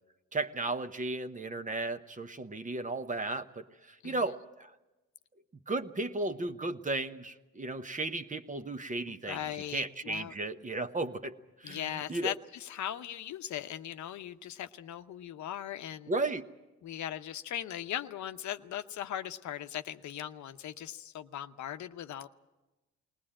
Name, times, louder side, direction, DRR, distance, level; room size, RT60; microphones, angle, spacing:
voice 1, 0.3-4.7 5.7-9.4 9.7-12.3 16.1-16.5, right 2 dB, 25° right, 10 dB, 1.0 m, -35 dB
voice 2, 9.3-10.3 11.6-16.1 16.8-22.3, left 11 dB, 70° left, 9 dB, 0.8 m, -39 dB
20.0 x 19.0 x 8.8 m, 1.1 s
cardioid pair, 90°, 30 cm